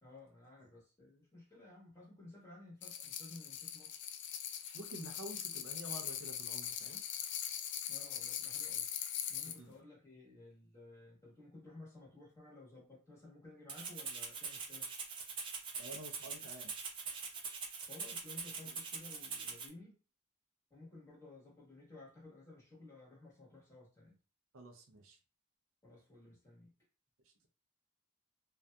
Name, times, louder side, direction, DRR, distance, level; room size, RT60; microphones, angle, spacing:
voice 1, 0.0-4.0 7.9-8.9 9.3-14.9 17.8-19.9 20.7-24.2 25.8-26.7, left 2 dB, 15° left, -6 dB, 1.2 m, -55 dB
sound 1, 2.8-9.6, left 9 dB, 60° left, 0.4 m, -41 dB
voice 2, 4.7-7.0 9.6-9.8 15.8-16.7 18.6-18.7 24.5-25.2 27.2-27.5, right 1 dB, 85° right, 3 dB, 0.5 m, -50 dB
Rattle (instrument), 13.7-19.7, right 5 dB, 25° right, 0.4 m, -43 dB
2.6 x 2.4 x 2.2 m, 0.35 s
head